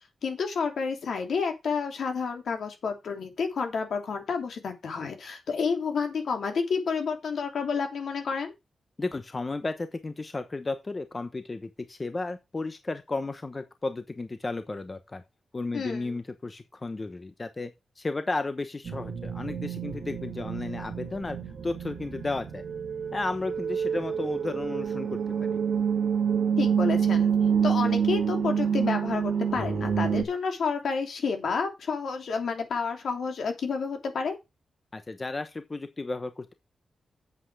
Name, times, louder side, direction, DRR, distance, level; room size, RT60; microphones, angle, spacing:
voice 1, 0.2-8.5 15.7-16.2 26.6-27.3 27.6-34.4, left 5 dB, 75° left, 3.0 m, -30 dB
voice 2, 9.0-15.2 15.5-17.7 18.0-21.4 21.6-22.6 23.1-25.6 34.9-36.5, left 3 dB, 30° left, 1.1 m, -33 dB
sound 1, 18.8-30.2, right 7 dB, 65° right, 1.8 m, -27 dB
8.3 x 8.0 x 4.8 m
wide cardioid pair, 100°, 0 cm